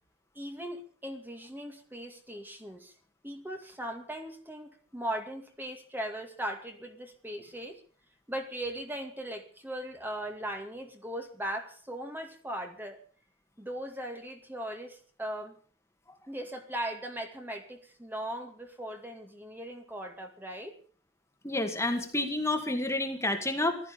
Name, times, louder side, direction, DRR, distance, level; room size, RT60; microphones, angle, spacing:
voice 1, 0.3-2.9 3.2-7.8 8.3-13.0 13.6-15.6 16.3-20.8, right 1 dB, 10° right, 4 dB, 2.3 m, -39 dB
voice 2, 21.4-23.9, left 2 dB, 15° left, 5 dB, 2.2 m, -30 dB
16.0 x 13.0 x 6.9 m, 0.43 s
head